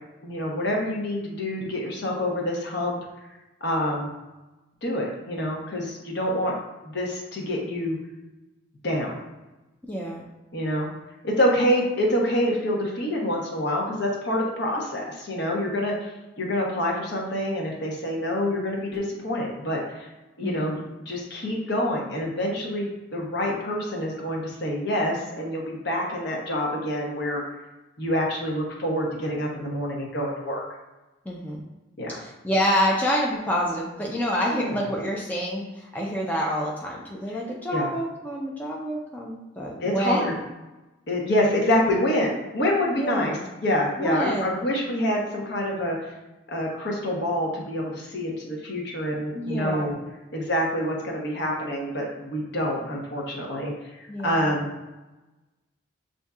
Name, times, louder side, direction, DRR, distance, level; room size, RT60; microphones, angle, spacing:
voice 1, 0.2-3.0 3.6-4.1 4.8-6.5 6.8-8.0 8.8-9.2 10.5-10.9 11.2-20.1 20.4-27.4 28.0-30.6 32.0-32.2 34.5-34.7 37.3-37.4 37.7-37.9 39.8-40.3 41.1-46.0 46.5-50.0 50.3-54.7, left 1 dB, 55° left, -2 dB, 1.0 m, -27 dB
voice 2, 9.8-10.3 20.4-20.7 31.3-31.6 32.1-40.4 42.9-43.5 44.0-44.5 49.3-49.9 54.1-54.5, equal, 10° left, -3 dB, 0.4 m, -28 dB
6.8 x 2.6 x 2.4 m, 1.1 s
head